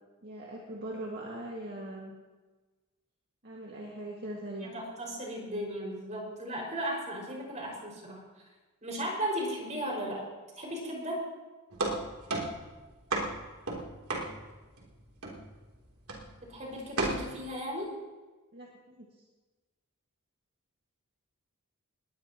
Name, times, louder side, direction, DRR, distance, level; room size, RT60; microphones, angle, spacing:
voice 1, 0.2-2.2 3.4-4.7 18.5-19.1, right 1 dB, 50° right, -2 dB, 2.0 m, -41 dB
voice 2, 4.6-8.2 8.8-10.2 10.6-11.2 16.5-17.9, equal, 35° right, -2 dB, 5.6 m, -36 dB
sound 1, 11.7-14.9 15.2-15.7 16.1-16.4 17.0-17.2, right 2 dB, 90° right, 3.3 m, -33 dB
20.5 x 18.0 x 3.0 m, 1.3 s
head